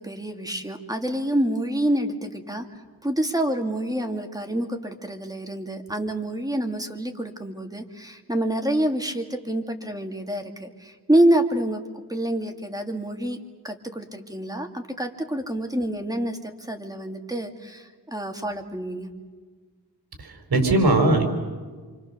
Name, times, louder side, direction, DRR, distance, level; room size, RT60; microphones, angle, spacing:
voice 1, 0.0-2.7 3.0-11.8 12.1-13.4 13.6-19.1, right 1 dB, 10° right, 4 dB, 2.5 m, -27 dB
voice 2, 20.2-21.2, right 2 dB, 70° right, 4 dB, 4.9 m, -20 dB
27.5 x 26.0 x 6.9 m, 1.5 s
wide cardioid pair, 85°, 39 cm